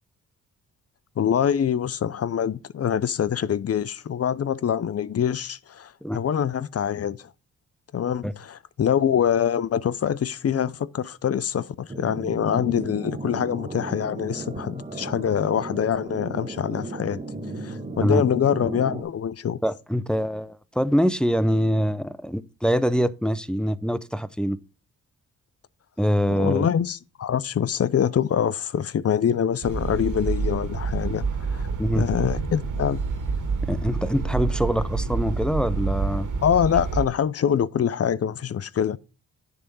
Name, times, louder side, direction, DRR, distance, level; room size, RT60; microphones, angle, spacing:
voice 1, 1.2-7.3 7.9-17.2 17.6-19.6 26.3-31.3 31.5-31.6 31.9-33.0 36.4-39.0, left 8 dB, 45° left, 0.6 m, -24 dB
sound 1, 11.9-19.0, right 2 dB, 20° right, 1.4 m, -35 dB
voice 2, 19.6-24.6 26.0-26.7 31.8-32.1 33.7-36.3, equal, ahead, 0.6 m, -24 dB
sound 2, 29.6-37.1, right 4 dB, 55° right, 2.0 m, -28 dB
9.9 x 3.5 x 5.4 m
supercardioid pair, 50°, 36 cm